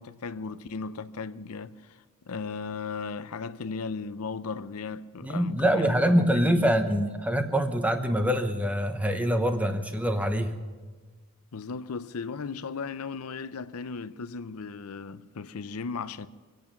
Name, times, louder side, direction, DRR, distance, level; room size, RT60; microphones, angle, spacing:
voice 1, 0.0-6.7 11.5-16.3, left 4 dB, 85° left, 0.6 m, -36 dB
voice 2, 5.2-10.5, equal, 5° right, 1.0 m, -25 dB
25.0 x 9.0 x 5.9 m
head